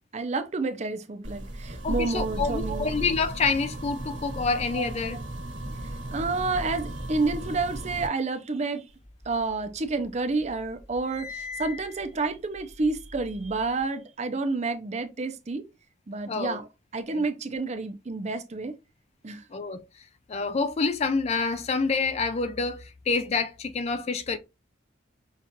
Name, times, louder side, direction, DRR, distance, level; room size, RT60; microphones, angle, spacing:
voice 1, 0.0-2.9 4.7-5.2 6.1-8.8 9.3-15.6 16.1-18.7 19.2-19.4, right 3 dB, 40° right, 0.5 m, -30 dB
sound 1, 1.2-8.1, right 1 dB, 90° right, 1.2 m, -35 dB
voice 2, 1.8-5.2 16.3-16.6 17.1-17.2 19.5-19.8 20.3-24.4, left 4 dB, 35° left, 0.4 m, -27 dB
sound 2, 9.0-10.1 10.4-13.8, left 4 dB, 60° left, 2.8 m, -42 dB
5.9 x 2.4 x 2.7 m
head